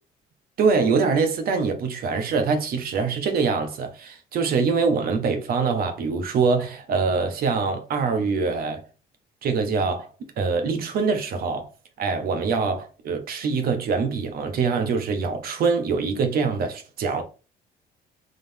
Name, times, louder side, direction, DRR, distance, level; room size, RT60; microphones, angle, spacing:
voice 1, 0.6-8.8 9.4-10.1 10.4-11.7 12.0-17.2, right 5 dB, 60° right, 1.3 m, -24 dB
3.9 x 3.3 x 3.5 m
cardioid pair, 110°, 17 cm